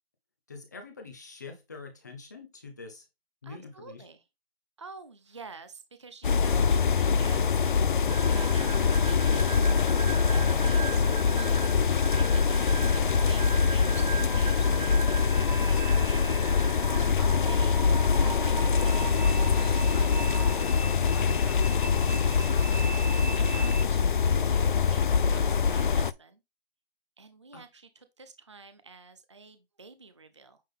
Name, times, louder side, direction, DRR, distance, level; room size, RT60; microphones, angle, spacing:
voice 1, 0.5-3.0 3.4-4.0 14.0-14.1 15.0-15.4 17.2-17.7 21.1-21.3 23.5-23.8 27.5-27.6, left 4 dB, 20° left, 0.9 m, -44 dB
voice 2, 3.4-4.2 4.8-9.6 10.0-11.0 11.3-17.8 18.2-24.0 24.4-26.4 27.2-30.6, right 4 dB, 30° right, 0.5 m, -49 dB
sound 1, 6.2-26.1, left 6 dB, 55° left, 0.5 m, -24 dB
sound 2, 8.1-20.6, right 7 dB, 45° right, 1.2 m, -39 dB
sound 3, 15.2-23.8, right 2 dB, 75° left, 1.7 m, -43 dB
9.1 x 3.7 x 3.7 m
hypercardioid pair, 180°, 30 cm